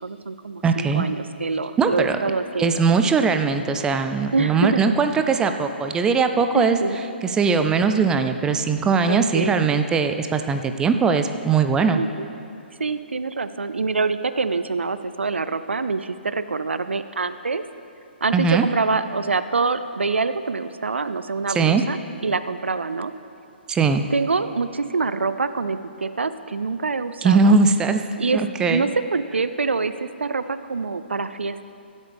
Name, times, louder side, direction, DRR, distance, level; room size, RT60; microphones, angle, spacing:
voice 1, 0.0-2.8 4.3-4.8 6.5-7.0 9.1-9.6 11.9-12.3 12.8-17.6 18.2-22.0 22.2-23.1 24.1-27.6 28.2-31.6, right 4 dB, 85° right, 12 dB, 0.4 m, -25 dB
voice 2, 0.6-1.1 1.8-2.2 2.6-6.8 7.2-12.0 18.3-18.6 21.5-21.8 23.7-24.1 27.2-28.0 28.3-28.9, right 5 dB, 10° right, 7 dB, 0.4 m, -20 dB
15.5 x 8.2 x 3.4 m, 2.6 s
figure-of-eight pair, 135°, 6 cm